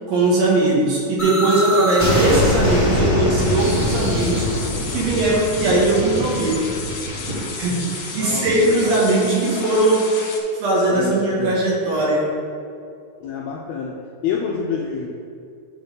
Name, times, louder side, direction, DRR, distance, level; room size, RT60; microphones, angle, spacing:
voice 1, 0.1-4.5 4.9-6.6 7.6-10.1 10.6-12.3, right 2 dB, 60° right, -5 dB, 2.5 m, -19 dB
sound 1, 1.2-6.9, left 1 dB, 45° left, 0.5 m, -22 dB
sound 2, 3.4-10.4, left 4 dB, 65° left, 2.2 m, -33 dB
sound 3, 3.6-8.9, right 1 dB, 80° right, 0.8 m, -33 dB
voice 2, 8.2-8.9 10.9-11.6 13.2-15.1, left 6 dB, 80° left, -1 dB, 1.6 m, -28 dB
9.4 x 3.5 x 5.4 m, 2.5 s
omnidirectional pair, 3.6 m